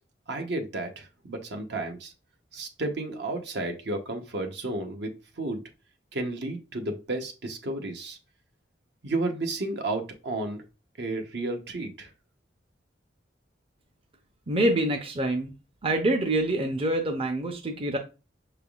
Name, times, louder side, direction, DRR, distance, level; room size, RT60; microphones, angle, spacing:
voice 1, 0.3-2.1 2.5-5.6 6.1-8.2 9.0-10.6 11.0-12.1, right 2 dB, 70° right, 5 dB, 0.8 m, -32 dB
voice 2, 14.5-15.5 15.8-18.0, right 1 dB, 30° right, 4 dB, 0.5 m, -26 dB
5.9 x 3.4 x 2.3 m, 0.30 s
head